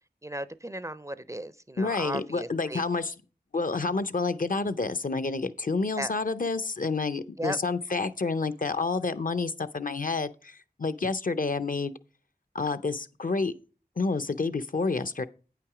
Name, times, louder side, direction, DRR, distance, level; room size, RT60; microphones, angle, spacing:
voice 1, 0.2-2.8 6.0-6.1 7.4-7.6, right 1 dB, 20° right, 0.4 m, -35 dB
voice 2, 1.8-3.1 3.5-12.0 12.5-13.5 14.0-15.2, left 3 dB, 55° left, 0.5 m, -29 dB
8.8 x 5.8 x 4.8 m
wide cardioid pair, 45°, 17 cm